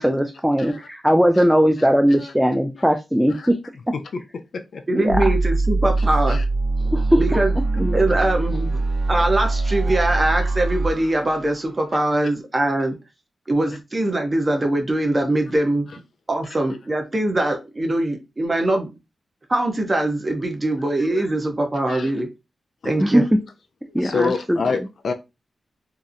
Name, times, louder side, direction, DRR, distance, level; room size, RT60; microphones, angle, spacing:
voice 1, 0.0-3.6 4.9-5.2 6.9-7.2 7.8-8.0 23.0-23.3 23.9-24.6, equal, 5° right, 0.3 m, -19 dB
voice 2, 1.8-2.3 3.3-3.5 3.9-4.8 6.1-6.4 11.2-11.3 18.6-18.7 21.1-21.3 21.9-22.1 22.8-23.3 23.9-25.1, left 4 dB, 75° left, 0.4 m, -29 dB
voice 3, 4.9-6.4 7.2-7.6 7.9-8.8 9.1-13.0 13.5-15.9 16.3-18.9 19.5-22.3 22.8-23.2, right 1 dB, 35° right, 0.7 m, -22 dB
sound 1, 5.1-12.0, right 2 dB, 70° right, 0.5 m, -23 dB
2.8 x 2.0 x 2.4 m
cardioid pair, 65°, 0 cm